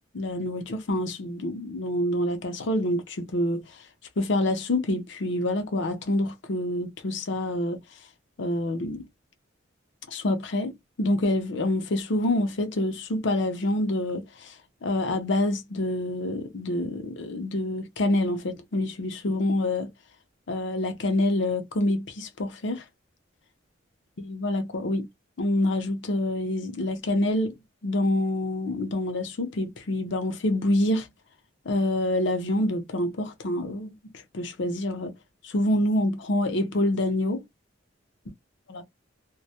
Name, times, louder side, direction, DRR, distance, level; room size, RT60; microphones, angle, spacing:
voice 1, 0.1-3.6 4.2-7.8 8.4-9.0 10.1-14.5 14.8-19.9 20.5-22.8 24.2-25.1 25.4-27.5 27.8-31.1 31.7-33.9 34.3-35.1 35.4-37.4 38.7-38.8, left 1 dB, 65° left, 0.6 m, -27 dB
2.2 x 2.1 x 2.7 m
head